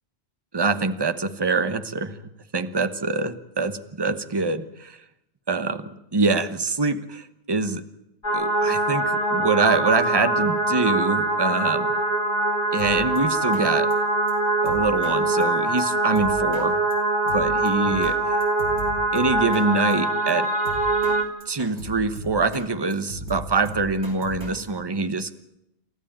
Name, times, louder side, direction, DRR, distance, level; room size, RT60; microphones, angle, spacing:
voice 1, 0.5-2.2 2.5-5.0 5.5-7.8 8.3-11.9 12.7-13.9 14.6-16.8 17.3-18.4 19.1-20.5 21.5-25.3, right 3 dB, 25° right, 10 dB, 1.1 m, -24 dB
sound 1, 8.2-21.2, right 2 dB, 40° left, 2.7 m, -23 dB
Drum kit, 12.8-13.2 13.5-13.7 13.9-14.0 14.3-14.4 14.7-15.2 15.4-15.5 15.8-15.9 16.2-16.7 16.9-17.0 17.3-18.2 18.4-19.7 19.9-20.0 20.3-20.4 20.7-21.2 21.4-22.7 22.9-24.6, right 1 dB, 75° right, 4.7 m, -37 dB
29.0 x 14.0 x 8.9 m, 0.85 s
omnidirectional pair, 1.1 m